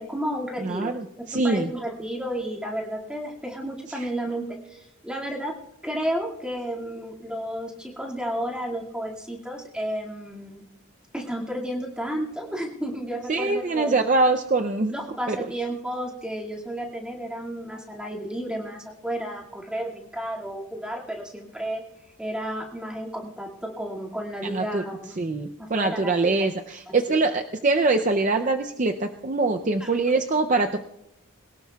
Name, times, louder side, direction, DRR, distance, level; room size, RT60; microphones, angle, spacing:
voice 1, 0.0-1.0 1.3-5.5 5.8-10.6 11.1-13.9 14.9-21.8 22.2-25.2 25.6-26.1 26.9-27.2 29.8-29.9, equal, 5° right, -1 dB, 2.1 m, -32 dB
voice 2, 0.6-1.7 3.9-4.1 13.3-14.9 15.3-15.4 24.4-24.8 25.2-30.8, right 3 dB, 35° right, 6 dB, 0.5 m, -23 dB
22.0 x 18.5 x 2.3 m, 0.90 s
head